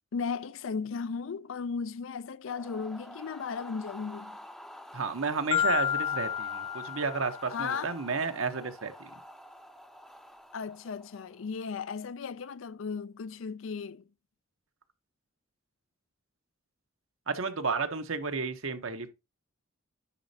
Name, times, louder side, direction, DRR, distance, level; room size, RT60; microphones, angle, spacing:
voice 1, 0.1-4.4 7.5-8.0 10.5-14.1, left 5 dB, 70° left, 0.4 m, -36 dB
sound 1, 2.4-11.5, equal, ahead, 0.6 m, -48 dB
voice 2, 4.9-9.1 17.3-19.1, right 4 dB, 80° right, 1.1 m, -32 dB
Marimba xylophone, 5.5-7.7, left 10 dB, 40° left, 0.8 m, -30 dB
9.9 x 5.3 x 2.8 m
head